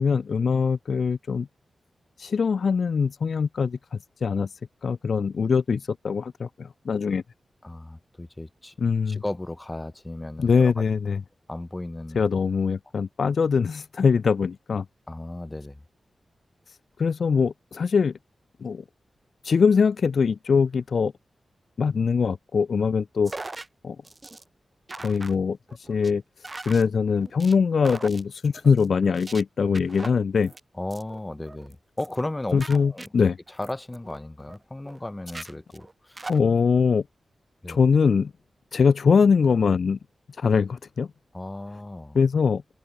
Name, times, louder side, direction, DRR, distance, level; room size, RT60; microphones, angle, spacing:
voice 1, 0.0-1.5 2.2-4.5 4.8-7.2 8.8-9.2 10.4-11.2 12.2-14.9 17.0-18.2 18.6-18.8 19.4-21.1 21.8-23.3 23.8-24.0 25.0-26.2 26.7-30.5 32.5-33.4 36.3-37.0 37.7-38.3 38.7-40.0 40.4-41.1 42.1-42.6, left 5 dB, 65° left, 0.3 m, -22 dB
voice 2, 7.6-8.7 9.1-10.7 11.5-12.2 15.1-15.8 30.7-33.1 33.6-36.3 37.6-37.8 41.3-42.2, left 1 dB, 15° left, 1.0 m, -35 dB
sound 1, 23.2-23.7 24.0-24.4 24.9-25.3 25.7-26.1 26.4-26.8 27.2-27.5 27.8-28.2 28.5-28.9 29.1-29.4 29.7-30.6 30.9-31.2 31.5-31.7 32.0-32.3 32.5-34.6 34.8-35.0 35.3-36.4, right 2 dB, 30° right, 1.4 m, -40 dB
wide cardioid pair, 90°, 0 cm